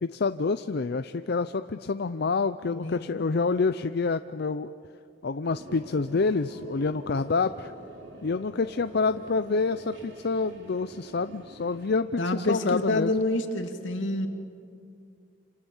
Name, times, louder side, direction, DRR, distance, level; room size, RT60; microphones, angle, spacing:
voice 1, 0.0-4.7 5.2-7.7 8.2-13.1, left 4 dB, 60° left, 10 dB, 0.5 m, -27 dB
voice 2, 2.7-3.2 12.2-14.3, left 2 dB, 85° left, 5 dB, 2.5 m, -28 dB
sound 1, 5.4-12.0, right 1 dB, 70° right, 4.2 m, -45 dB
28.5 x 27.0 x 7.3 m, 2.4 s
head